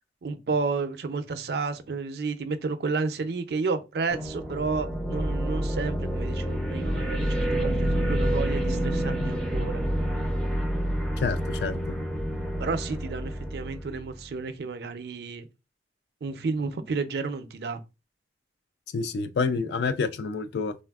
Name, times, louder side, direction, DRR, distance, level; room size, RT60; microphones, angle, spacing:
voice 1, 0.2-9.8 12.6-15.5 16.2-17.8, right 4 dB, 65° right, 0.4 m, -31 dB
sound 1, 4.1-14.3, equal, 5° left, 0.4 m, -28 dB
voice 2, 11.2-11.8 18.9-20.8, left 4 dB, 70° left, 0.3 m, -28 dB
3.2 x 2.4 x 2.3 m
head